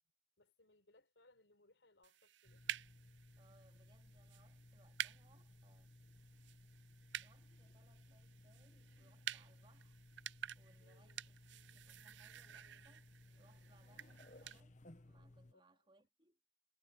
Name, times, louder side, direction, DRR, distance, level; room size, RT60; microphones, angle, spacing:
voice 1, 0.4-2.6 10.8-11.2 15.5-15.6, left 2 dB, 90° left, 4.9 m, -70 dB
sound 1, 2.0-14.6, right 11 dB, 80° right, 0.5 m, -51 dB
sound 2, 2.4-15.5, left 2 dB, 45° left, 1.1 m, -61 dB
voice 2, 3.4-5.9 7.2-10.0 10.5-11.4 11.7-14.8 15.0-16.4, right 2 dB, 30° right, 3.3 m, -72 dB
head